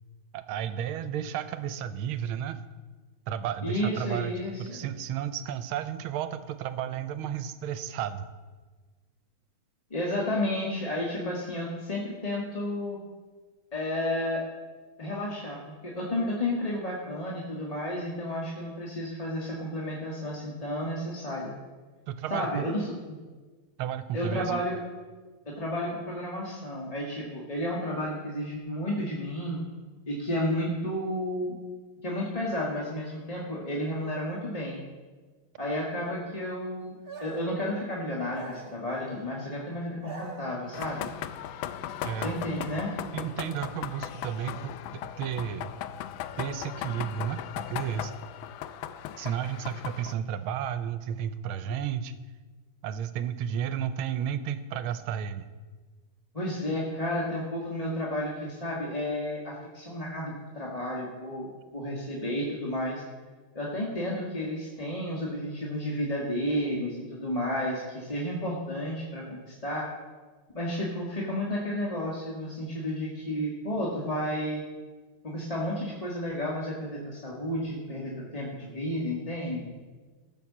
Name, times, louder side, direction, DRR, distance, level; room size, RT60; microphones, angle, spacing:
voice 1, 0.3-2.6 3.3-8.3 22.1-22.7 23.8-24.6 42.0-42.4 43.1-45.7 46.4-48.1 49.2-52.1 52.8-55.5, right 9 dB, 85° right, 12 dB, 1.5 m, -33 dB
voice 2, 3.6-4.8 9.9-13.0 13.7-14.5 15.0-21.5 22.3-22.9 24.1-24.8 25.4-29.6 30.1-31.6 32.0-34.8 35.6-41.1 42.2-42.9 56.3-63.0 63.5-69.9 70.5-74.6 75.2-79.7, left 1 dB, 20° left, -4 dB, 1.4 m, -32 dB
sound 1, 37.1-37.6 38.3-39.2 39.8-40.9, right 3 dB, 35° right, 1.2 m, -44 dB
sound 2, 40.7-50.1, left 11 dB, 75° left, 1.3 m, -38 dB
14.5 x 6.6 x 7.2 m, 1.4 s
omnidirectional pair, 2.3 m